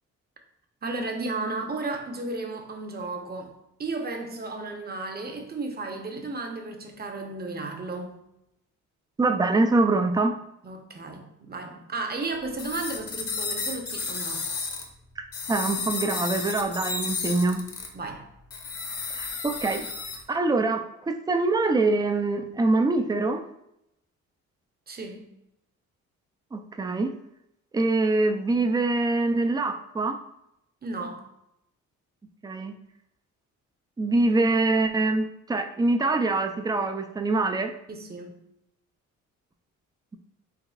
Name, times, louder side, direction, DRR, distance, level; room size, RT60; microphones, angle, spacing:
voice 1, 0.8-3.5 3.8-8.2 10.6-14.5 17.9-18.3 24.9-25.3 30.8-31.3 37.9-38.4, right 3 dB, 30° right, 3 dB, 0.8 m, -34 dB
voice 2, 9.2-10.4 15.2-17.6 19.1-19.9 20.3-23.4 26.5-27.1 27.7-30.2 32.4-32.7 34.0-37.7, right 3 dB, 15° right, 6 dB, 0.4 m, -24 dB
sound 1, 12.6-14.8 15.3-17.9 18.5-20.2, left 4 dB, 50° left, 0.9 m, -32 dB
4.8 x 3.4 x 2.4 m, 0.82 s
cardioid pair, 90°, 30 cm